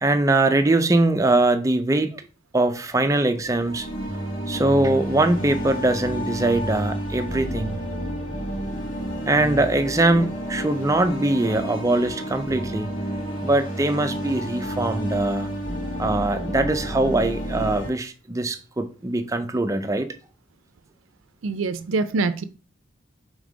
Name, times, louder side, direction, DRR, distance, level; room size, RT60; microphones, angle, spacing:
voice 1, 0.0-2.3 2.5-3.9 4.5-7.8 9.3-12.9 13.4-15.5 16.0-20.1, right 2 dB, 15° right, 0.5 m, -22 dB
sound 1, 3.3-17.9, equal, 85° left, 2.0 m, -30 dB
voice 2, 21.4-22.4, right 3 dB, 90° right, 0.5 m, -24 dB
5.2 x 3.6 x 5.0 m
head